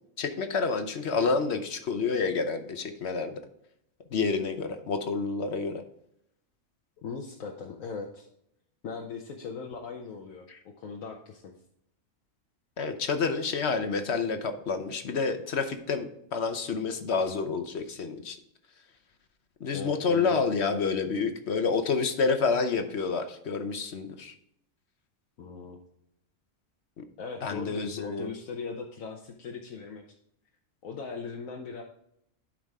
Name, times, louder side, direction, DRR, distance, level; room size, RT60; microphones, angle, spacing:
voice 1, 0.2-3.4 4.1-5.8 10.5-10.6 12.8-18.4 19.6-24.3 27.0-27.1 27.4-28.3, left 4 dB, 60° left, 8 dB, 1.1 m, -29 dB
voice 2, 7.0-8.3 8.8-10.5 10.8-11.5 19.7-20.4 25.4-25.8 27.2-30.0 30.8-31.8, left 5 dB, 80° left, 1 dB, 1.3 m, -39 dB
11.5 x 4.9 x 3.5 m, 0.75 s
omnidirectional pair, 1.4 m